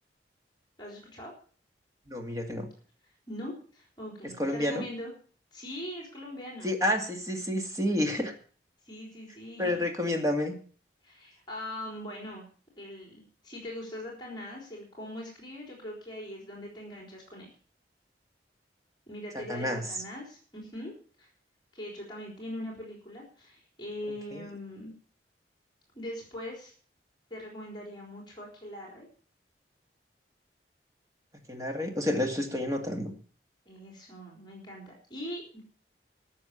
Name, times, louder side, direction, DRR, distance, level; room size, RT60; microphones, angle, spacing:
voice 1, 0.8-1.3 3.3-5.1 5.5-6.7 8.8-9.8 11.0-12.5 12.8-17.5 19.1-20.9 21.2-21.3 21.7-24.9 25.9-26.7 27.3-29.1 32.4-32.6 33.7-35.6, left 1 dB, 25° left, -1 dB, 4.0 m, -41 dB
voice 2, 2.1-2.7 4.2-4.8 6.6-8.3 9.6-10.6 19.3-19.8 24.3-24.5 31.5-33.1, left 1 dB, 20° right, 4 dB, 2.2 m, -29 dB
13.0 x 7.0 x 8.3 m, 0.43 s
head